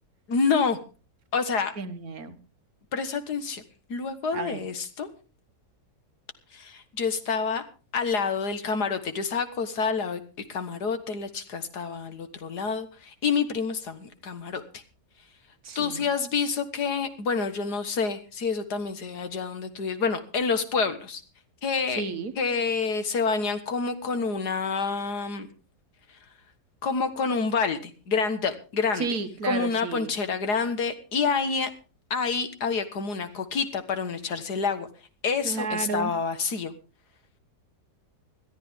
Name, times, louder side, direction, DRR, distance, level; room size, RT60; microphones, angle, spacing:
voice 1, 0.3-0.8 1.3-1.7 2.9-3.6 3.9-5.1 6.5-7.6 7.9-10.2 10.5-14.8 15.8-21.2 21.6-22.0 22.4-25.5 26.8-29.1 29.4-31.7 32.1-34.9 35.2-36.7, left 5 dB, 65° left, 2.0 m, -28 dB
voice 2, 1.8-2.4 4.3-4.6 15.6-16.0 22.0-22.3 29.0-30.1 35.4-36.1, right 4 dB, 60° right, 1.5 m, -32 dB
21.0 x 13.0 x 3.6 m
omnidirectional pair, 1.9 m